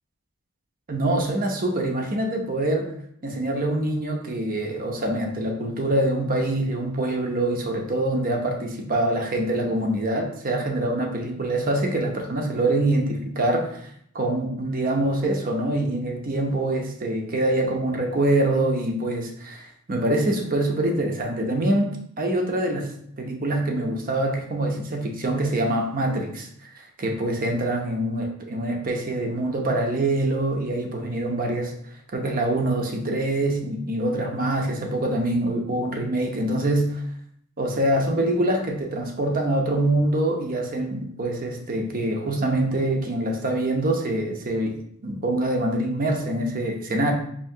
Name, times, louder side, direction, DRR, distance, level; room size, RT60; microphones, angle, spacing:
voice 1, 0.9-2.9 3.2-13.9 14.1-22.9 23.2-31.7 32.1-37.0 37.6-47.1, right 1 dB, 40° right, 2 dB, 0.6 m, -25 dB
4.4 x 2.8 x 2.7 m, 0.66 s
head